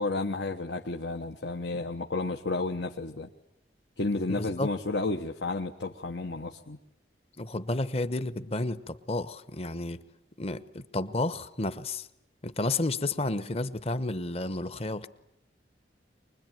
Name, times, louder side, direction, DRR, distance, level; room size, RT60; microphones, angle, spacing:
voice 1, 0.0-3.3 4.0-6.8, left 3 dB, 75° left, 1.1 m, -32 dB
voice 2, 4.3-4.7 7.4-10.0 10.4-12.1 12.4-15.1, left 2 dB, 35° left, 1.0 m, -31 dB
24.5 x 21.5 x 9.2 m
head